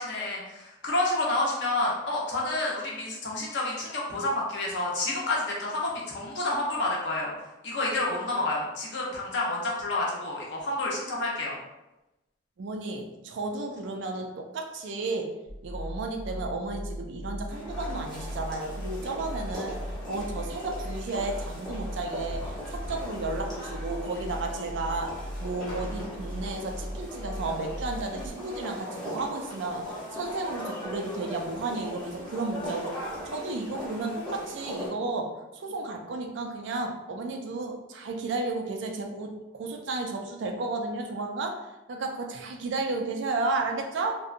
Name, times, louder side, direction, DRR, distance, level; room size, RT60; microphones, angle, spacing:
voice 1, 0.0-7.3 7.6-11.6, left 2 dB, 60° left, -3 dB, 0.7 m, -29 dB
voice 2, 12.6-15.3 15.6-19.8 20.1-44.2, right 3 dB, 65° right, 3 dB, 0.4 m, -33 dB
sound 1, 15.5-28.3, equal, 80° left, 1.0 m, -38 dB
sound 2, 17.5-34.9, equal, 5° left, 0.7 m, -39 dB
2.7 x 2.2 x 2.5 m, 0.98 s
head